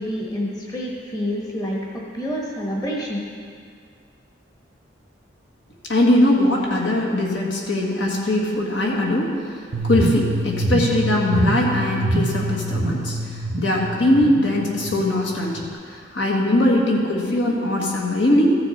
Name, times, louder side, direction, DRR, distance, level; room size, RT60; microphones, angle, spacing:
voice 1, 0.0-3.2, equal, 20° left, -3 dB, 1.1 m, -28 dB
voice 2, 5.9-18.6, left 1 dB, 70° left, -2 dB, 1.7 m, -21 dB
sound 1, 9.7-15.7, right 2 dB, 80° right, 0.7 m, -25 dB
14.5 x 6.8 x 4.2 m, 2.2 s
head